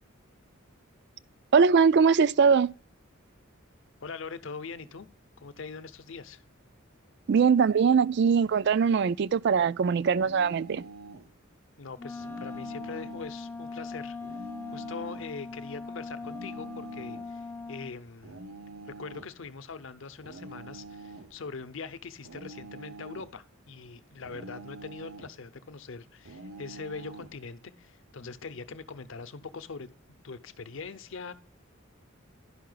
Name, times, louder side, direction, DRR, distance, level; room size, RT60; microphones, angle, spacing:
voice 1, 1.5-2.7 7.3-10.8, right 6 dB, 55° right, 0.3 m, -21 dB
voice 2, 4.0-5.1 5.4-6.4 11.8-14.2 14.7-18.4 18.9-29.9 30.2-31.3, left 4 dB, 65° left, 0.7 m, -42 dB
sound 1, 10.2-11.3 12.2-13.3 14.2-15.3 16.2-17.3 18.2-19.4 20.2-21.4 22.2-23.4 24.2-25.4 26.3-27.4, right 3 dB, 90° right, 0.9 m, -46 dB
Wind instrument woodwind instrument, 12.0-18.0, left 4 dB, 10° left, 0.5 m, -40 dB
11.0 x 5.7 x 3.9 m
head